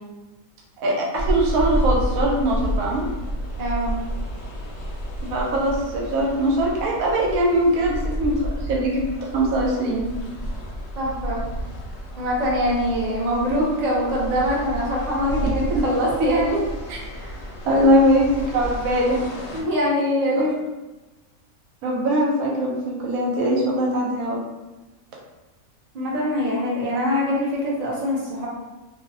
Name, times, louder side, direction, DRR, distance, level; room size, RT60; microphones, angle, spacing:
voice 1, 0.8-3.0 5.2-10.0 17.7-19.2 20.4-20.5 21.8-24.4, right 1 dB, 80° right, -3 dB, 1.0 m, -21 dB
sound 1, 1.1-19.6, equal, 70° left, 0.9 m, -30 dB
voice 2, 3.6-4.0 11.0-11.4 12.2-17.9 19.5-20.5 25.9-28.5, equal, 45° right, -5 dB, 0.5 m, -24 dB
2.6 x 2.0 x 2.6 m, 1.1 s
omnidirectional pair, 1.5 m